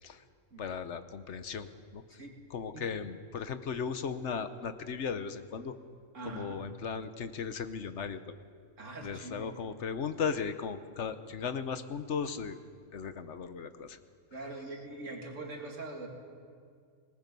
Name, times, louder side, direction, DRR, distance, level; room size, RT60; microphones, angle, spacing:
voice 1, 0.6-2.2 2.5-5.7 6.2-8.3 9.0-12.6 12.9-14.0, left 6 dB, 70° left, 10 dB, 1.3 m, -37 dB
voice 2, 6.1-6.6 8.8-9.5 14.3-16.1, right 2 dB, 85° right, 0 dB, 2.9 m, -42 dB
26.0 x 19.5 x 5.4 m, 2.2 s
omnidirectional pair, 1.3 m